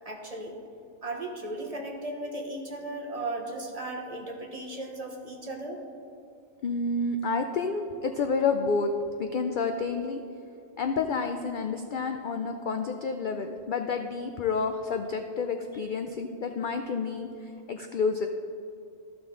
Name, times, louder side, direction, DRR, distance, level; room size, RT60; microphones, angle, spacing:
voice 1, 0.0-0.5 1.0-5.8, right 2 dB, 30° right, 0 dB, 1.1 m, -36 dB
voice 2, 6.6-8.9 9.2-10.2 10.8-17.3 17.7-18.3, left 4 dB, 65° left, 6 dB, 0.5 m, -29 dB
14.0 x 5.9 x 3.8 m, 2.7 s
omnidirectional pair, 1.3 m